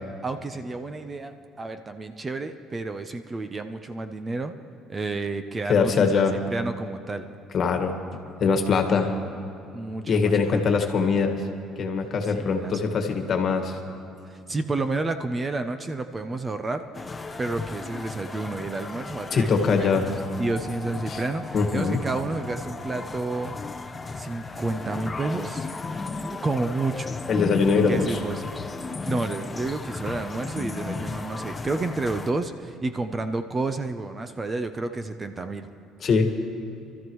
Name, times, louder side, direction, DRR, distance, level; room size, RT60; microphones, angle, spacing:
voice 1, 0.2-4.5 4.9-7.3 9.7-10.6 12.2-13.1 14.3-19.9 20.4-23.5 24.1-25.7 26.2-27.1 27.9-28.4 29.0-35.7, right 3 dB, 25° right, 9 dB, 0.7 m, -30 dB
voice 2, 5.7-6.3 7.5-7.9 8.4-9.1 10.1-11.4 11.8-13.8 19.3-20.1 21.1-21.2 21.5-22.0 27.3-28.2 36.0-36.3, left 5 dB, 45° left, 4 dB, 1.7 m, -22 dB
sound 1, 16.9-32.3, left 3 dB, 20° left, 0.8 m, -35 dB
27.0 x 13.5 x 3.1 m, 2.7 s
cardioid pair, 110°, 0 cm